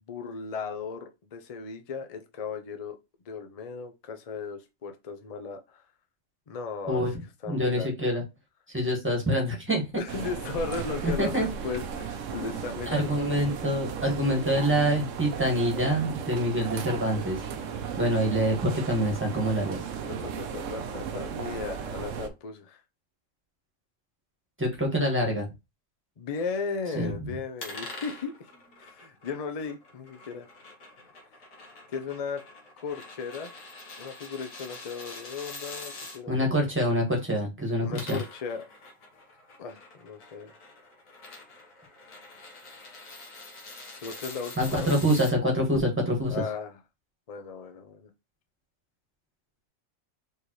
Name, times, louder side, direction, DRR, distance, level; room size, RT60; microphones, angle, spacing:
voice 1, 0.1-3.0 3.3-5.8 6.5-7.2 7.4-8.1 10.0-13.2 20.2-22.8 26.2-28.3 28.8-30.5 31.9-32.4 32.8-33.6 34.0-36.5 37.8-38.7 39.6-40.5 44.0-44.9 46.3-46.8 47.3-48.1, left 5 dB, 40° left, 0.5 m, -36 dB
voice 2, 6.9-7.2 7.5-8.2 8.7-9.8 11.0-11.5 12.9-17.4 18.0-19.8 24.6-25.5 26.9-27.3 36.3-38.2 44.6-46.4, equal, 10° right, 1.4 m, -26 dB
sound 1, 10.1-22.3, right 6 dB, 70° right, 1.0 m, -35 dB
sound 2, 27.6-36.2 37.7-45.3, left 3 dB, 75° left, 1.7 m, -45 dB
4.5 x 3.4 x 3.0 m
omnidirectional pair, 1.4 m